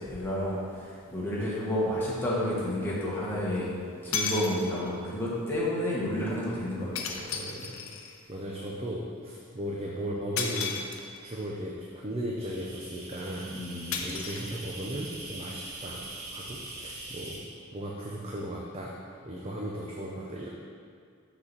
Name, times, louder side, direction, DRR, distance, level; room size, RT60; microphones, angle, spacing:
voice 1, 0.0-3.7 4.0-7.3 13.5-14.0, left 1 dB, 10° left, -7 dB, 1.4 m, -31 dB
sound 1, 1.4-1.5 3.6-3.7 4.1-5.0 7.0-8.2 10.4-11.4 13.9-15.0, left 5 dB, 65° left, 0.6 m, -34 dB
voice 2, 7.3-7.8 8.3-10.7 11.2-11.7 12.0-16.0 16.3-17.4 17.7-20.5, equal, 25° right, -3 dB, 0.6 m, -36 dB
sound 2, 12.4-17.4, right 2 dB, 65° right, 1.7 m, -42 dB
6.3 x 4.1 x 6.0 m, 2.2 s
head